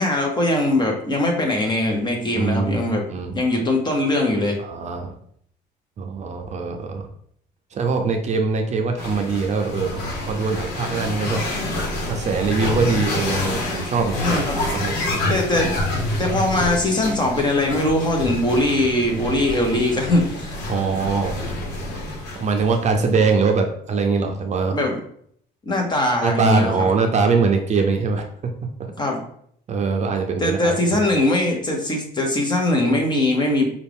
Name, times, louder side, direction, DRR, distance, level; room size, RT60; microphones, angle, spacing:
voice 1, 0.0-3.0 3.3-4.6 14.2-14.6 15.3-15.7 16.2-20.6 24.7-24.9 25.7-26.8 29.0-29.2 30.4-33.7, left 1 dB, 25° left, 1 dB, 1.1 m, -21 dB
voice 2, 2.4-2.8 3.1-3.4 4.6-5.1 6.0-7.1 7.7-11.4 12.1-15.3 20.7-21.4 22.4-24.8 26.2-28.7 29.7-30.8, right 4 dB, 45° right, 4 dB, 0.6 m, -22 dB
sound 1, 9.0-23.3, left 1 dB, 85° left, 1.1 m, -27 dB
5.3 x 2.5 x 3.5 m, 0.65 s
cardioid pair, 110°, 17 cm